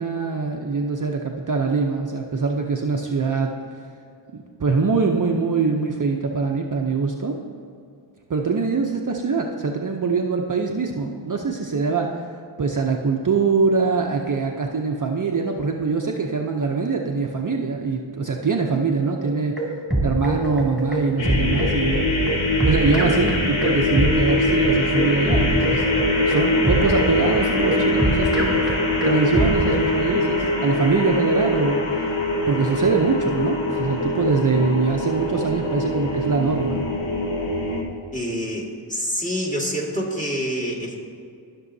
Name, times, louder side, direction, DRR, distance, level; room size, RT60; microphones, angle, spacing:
voice 1, 0.0-3.5 4.3-7.4 8.3-12.2 12.6-19.5 20.0-22.1 22.6-25.8 26.3-28.6 29.0-32.2 32.5-36.8, right 4 dB, 40° right, 1 dB, 0.6 m, -23 dB
sound 1, 19.2-29.9, right 1 dB, ahead, 2.1 m, -24 dB
sound 2, 21.2-37.8, left 1 dB, 65° left, 1.3 m, -23 dB
voice 2, 38.1-41.0, equal, 15° left, -2 dB, 1.9 m, -27 dB
14.0 x 6.1 x 2.7 m, 2.3 s
wide cardioid pair, 55°, 49 cm